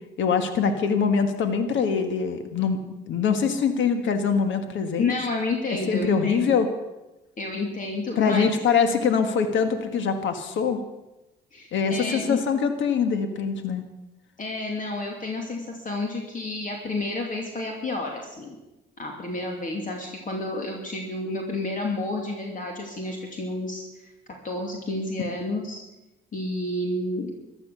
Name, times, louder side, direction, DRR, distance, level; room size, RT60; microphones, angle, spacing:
voice 1, 0.2-2.8 3.1-5.1 5.9-6.7 8.2-10.8 11.7-13.8, left 6 dB, 75° left, 7 dB, 1.6 m, -23 dB
voice 2, 5.0-6.5 7.4-8.5 11.5-12.4 14.4-18.6 19.0-23.9 24.4-25.8 26.3-27.3, left 2 dB, 40° left, 1 dB, 2.7 m, -30 dB
14.5 x 12.0 x 6.9 m, 1.0 s
cardioid pair, 90°, 20 cm